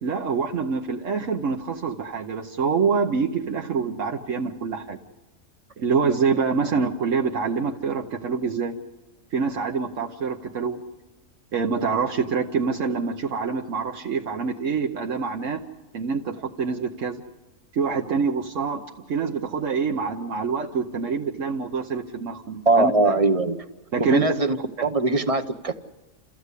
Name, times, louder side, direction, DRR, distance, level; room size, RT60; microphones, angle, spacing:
voice 1, 0.0-5.0 5.8-8.8 9.3-10.8 11.5-15.6 15.9-17.2 17.7-18.8 19.1-22.9 23.9-24.2 24.8-24.9, right 5 dB, 75° right, 1.3 m, -26 dB
voice 2, 22.7-23.6 24.0-25.7, right 2 dB, 30° right, 0.8 m, -21 dB
29.0 x 14.0 x 8.3 m
omnidirectional pair, 1.3 m